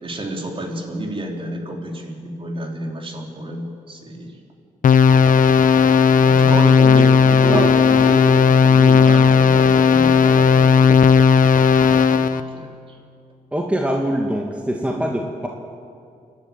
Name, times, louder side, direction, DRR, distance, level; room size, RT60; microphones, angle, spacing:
voice 1, 0.0-4.3 6.2-8.3 8.7-10.8 12.1-13.0, right 2 dB, 35° right, 1 dB, 3.8 m, -29 dB
sound 1, 4.8-12.4, left 6 dB, 65° left, 0.9 m, -14 dB
voice 2, 13.5-15.5, right 1 dB, 10° right, 0 dB, 2.0 m, -23 dB
29.5 x 12.5 x 9.1 m, 2.4 s
cardioid pair, 100°, 15 cm